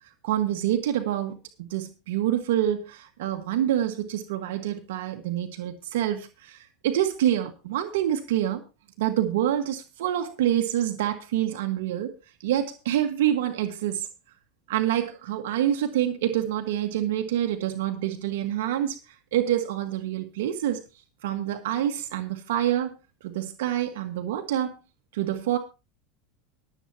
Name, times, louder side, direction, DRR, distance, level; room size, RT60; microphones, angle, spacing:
voice 1, 0.2-8.6 9.0-12.1 12.4-14.1 14.7-19.0 19.3-20.8 21.2-23.0 23.2-24.8 25.1-25.6, right 11 dB, 90° right, 1.5 m, -27 dB
24.5 x 8.2 x 2.9 m
supercardioid pair, 130°, 0 cm